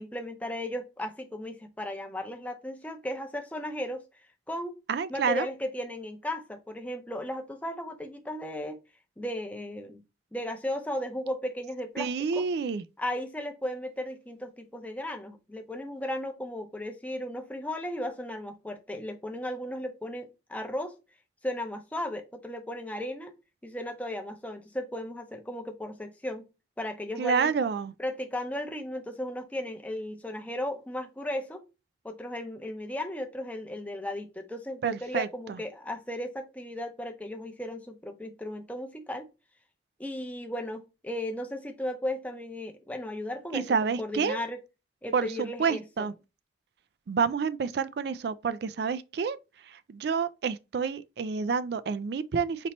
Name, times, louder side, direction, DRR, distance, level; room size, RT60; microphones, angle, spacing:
voice 1, 0.0-4.0 4.5-4.8 5.1-8.8 9.2-10.0 10.3-12.5 13.0-21.0 21.4-23.3 23.6-26.5 26.8-27.5 28.0-31.6 32.0-39.3 40.0-44.6 45.0-46.1, left 1 dB, 10° left, 0.6 m, -35 dB
voice 2, 4.9-5.5 12.0-12.8 27.2-27.9 34.8-35.6 43.5-44.4 45.1-46.1 47.1-49.4 49.7-52.7, right 5 dB, 55° right, 0.3 m, -29 dB
4.4 x 3.0 x 4.1 m
head